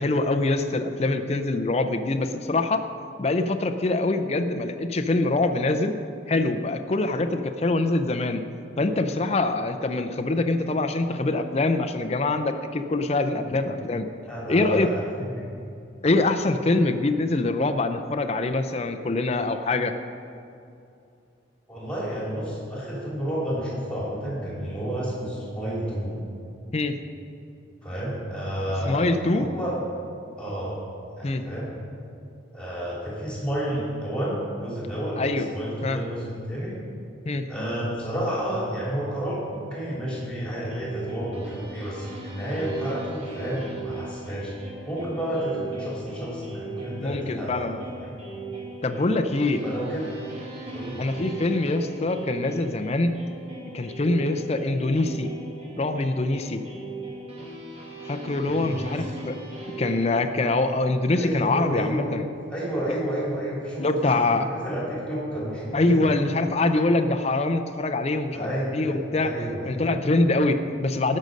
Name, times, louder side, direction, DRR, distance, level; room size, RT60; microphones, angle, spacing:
voice 1, 0.0-2.8 3.2-5.9 6.3-8.4 8.8-14.1 14.5-14.9 16.0-19.9 26.7-27.0 28.8-29.4 31.2-31.4 35.2-35.5 35.8-36.0 37.3-37.5 47.0-47.8 48.8-49.6 51.0-53.1 53.7-55.3 55.8-56.6 58.1-59.4 59.8-62.2 62.9-63.0 63.8-64.5 65.7-69.4 69.6-71.2, left 2 dB, 30° left, 7 dB, 0.5 m, -24 dB
voice 2, 14.3-15.4 21.7-26.1 27.8-29.1 29.3-29.7 30.4-30.8 31.1-31.7 32.5-35.2 35.5-36.8 37.5-44.5 44.8-48.1 49.6-50.1 50.7-51.0 58.5-59.0 61.1-62.1 62.5-66.1 68.3-69.7, right 1 dB, 5° left, -6 dB, 3.0 m, -31 dB
sound 1, 40.6-60.2, right 2 dB, 30° right, 2.1 m, -38 dB
18.5 x 6.5 x 5.3 m, 2.6 s
head